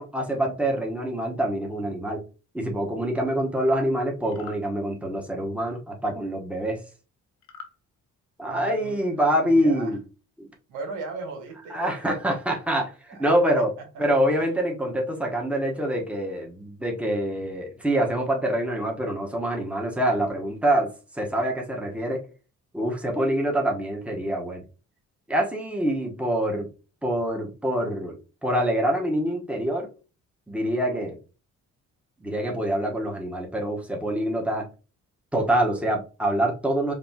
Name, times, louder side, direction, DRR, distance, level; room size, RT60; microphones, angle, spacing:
voice 1, 0.0-2.2 2.5-6.8 8.4-10.0 10.4-10.5 11.7-13.7 14.0-22.2 22.7-24.6 25.3-26.7 27.0-28.2 28.4-29.9 30.5-31.2 32.2-34.7 35.3-36.9, right 1 dB, 5° right, 0 dB, 1.3 m, -25 dB
sound 1, 4.2-4.6 7.4-7.8, left 6 dB, 70° left, 0.9 m, -44 dB
voice 2, 8.4-10.0 10.7-12.0 13.1-13.4, right 3 dB, 85° right, 2 dB, 1.6 m, -38 dB
5.1 x 2.9 x 3.0 m, 0.33 s
cardioid pair, 90°, 30 cm